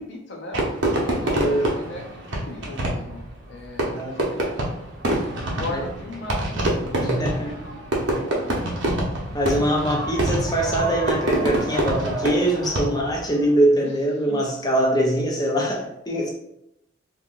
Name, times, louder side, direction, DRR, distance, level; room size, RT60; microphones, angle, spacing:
voice 1, 0.0-4.5 5.3-8.6 13.8-13.9 14.3-14.6, left 2 dB, 60° left, 2 dB, 0.7 m, -38 dB
Fireworks, 0.5-13.2, right 1 dB, 65° right, 0.8 m, -26 dB
voice 2, 1.3-1.7 3.9-4.2 5.7-5.8 7.0-7.5 9.3-16.3, right 1 dB, 20° left, -1 dB, 0.6 m, -23 dB
3.6 x 2.9 x 2.5 m, 0.80 s
head